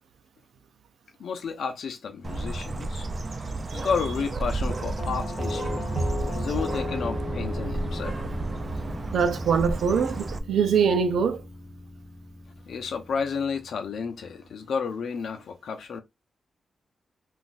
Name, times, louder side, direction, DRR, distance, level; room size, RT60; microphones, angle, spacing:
voice 1, 1.2-3.1 3.4-5.9 6.3-8.2 12.7-16.0, left 6 dB, 65° left, 0.7 m, -31 dB
Bird, 2.2-10.4, right 2 dB, 25° right, 0.4 m, -31 dB
Doorbell, 5.0-13.8, left 2 dB, 30° left, 0.6 m, -37 dB
voice 2, 9.1-11.4, right 6 dB, 80° right, 0.6 m, -23 dB
3.9 x 2.5 x 2.5 m
wide cardioid pair, 175°, 0 cm